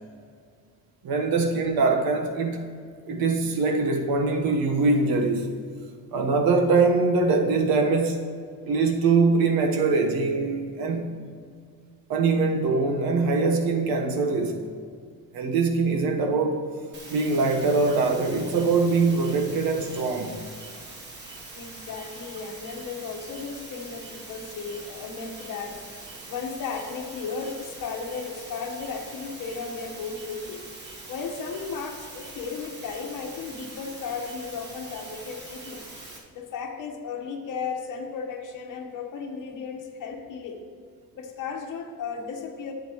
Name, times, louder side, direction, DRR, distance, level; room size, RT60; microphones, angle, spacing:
voice 1, 1.0-2.7 3.1-5.5 6.1-8.3 8.6-11.2 12.1-14.7 15.3-16.7 17.1-20.4, right 3 dB, 80° right, 1.1 m, -23 dB
sound 1, 16.9-36.2, right 2 dB, 30° right, 1.1 m, -43 dB
voice 2, 21.5-25.8 26.3-30.6 31.1-35.9 36.3-40.6 41.1-42.7, left 5 dB, 65° left, 1.2 m, -35 dB
11.5 x 8.1 x 3.0 m
cardioid pair, 180°, 35 cm